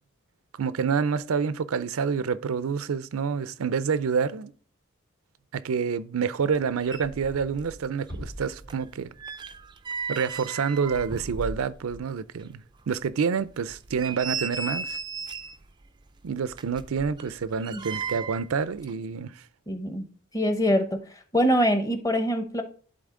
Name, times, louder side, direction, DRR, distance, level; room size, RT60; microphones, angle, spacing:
voice 1, 0.6-4.5 5.5-9.1 10.1-15.0 16.2-19.4, right 6 dB, 85° right, 0.4 m, -28 dB
sound 1, 6.5-6.6 6.8-7.8 8.1-12.0 12.4-12.5 13.0-13.1 13.7-15.6 16.5-18.5 18.8-18.9, right 5 dB, 20° right, 0.3 m, -36 dB
Bass drum, 8.1-9.5, equal, 65° left, 1.6 m, -42 dB
voice 2, 19.7-20.1 20.3-20.9 21.3-22.6, equal, 15° left, 0.8 m, -23 dB
11.5 x 4.0 x 3.7 m
head